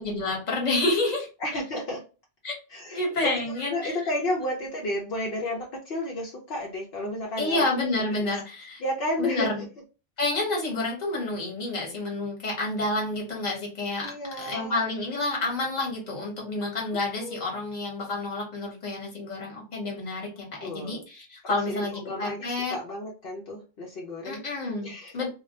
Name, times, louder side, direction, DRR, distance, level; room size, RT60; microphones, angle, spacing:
voice 1, 0.0-1.3 2.4-2.6 2.9-4.0 7.4-8.8 9.2-9.6 10.2-14.1 14.4-22.7 24.2-25.3, left 2 dB, 40° left, -1 dB, 1.1 m, -29 dB
voice 2, 1.4-2.0 2.7-7.7 8.8-9.5 14.0-14.8 17.2-17.5 20.6-21.0 21.4-24.4 24.8-25.2, left 1 dB, 70° left, -3 dB, 0.9 m, -32 dB
2.3 x 2.1 x 2.6 m, 0.32 s
omnidirectional pair, 1.1 m